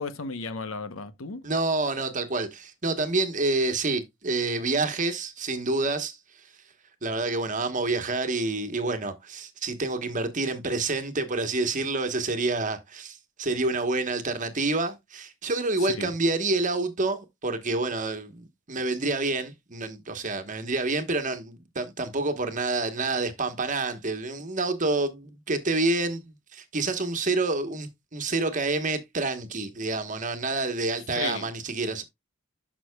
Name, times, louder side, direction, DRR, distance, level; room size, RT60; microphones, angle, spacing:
voice 1, 0.0-1.4 15.8-16.1 31.2-31.5, left 4 dB, 80° left, 0.9 m, -34 dB
voice 2, 1.4-6.2 7.0-32.0, right 3 dB, 40° right, 1.2 m, -28 dB
11.0 x 6.2 x 2.3 m
head